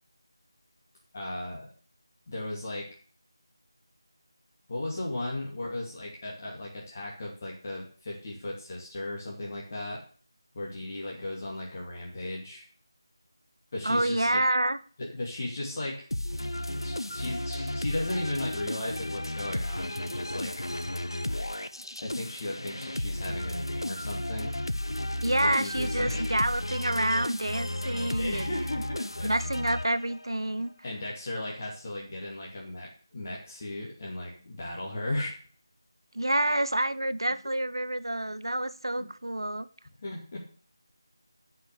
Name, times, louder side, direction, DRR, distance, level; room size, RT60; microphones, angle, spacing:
voice 1, 1.1-1.7 2.3-2.9 4.7-10.0 10.5-12.7 13.7-14.4 15.0-20.5 22.0-24.5 25.4-26.3 28.2-29.3 30.8-35.3 39.0-39.1 40.0-40.4, left 1 dB, 35° left, 2.5 m, -36 dB
voice 2, 13.8-14.8 25.2-28.5 29.2-30.7 36.1-39.7, right 1 dB, 75° right, 0.9 m, -28 dB
sound 1, 16.1-30.4, left 1 dB, 80° left, 0.9 m, -33 dB
10.0 x 5.9 x 6.8 m
figure-of-eight pair, 165°, 2 cm